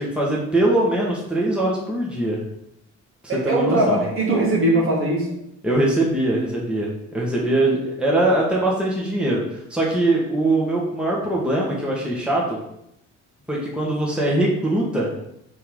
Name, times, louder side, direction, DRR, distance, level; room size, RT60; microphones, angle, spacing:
voice 1, 0.0-2.4 3.4-4.0 5.6-12.6 13.5-15.1, right 1 dB, 5° right, -4 dB, 1.5 m, -22 dB
voice 2, 3.3-5.3, right 1 dB, 45° right, -2 dB, 2.3 m, -20 dB
7.5 x 3.7 x 3.8 m, 0.79 s
cardioid pair, 90°, 30 cm